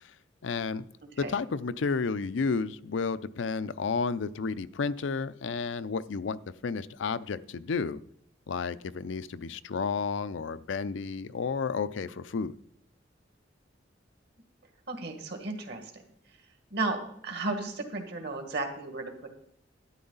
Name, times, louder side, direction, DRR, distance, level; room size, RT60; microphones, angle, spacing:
voice 1, 0.4-0.8 1.2-8.0 8.5-12.5, left 5 dB, 90° left, 14 dB, 0.5 m, -31 dB
voice 2, 14.9-15.8 16.7-19.3, right 3 dB, 65° right, 5 dB, 1.9 m, -34 dB
12.5 x 9.6 x 4.0 m, 0.70 s
head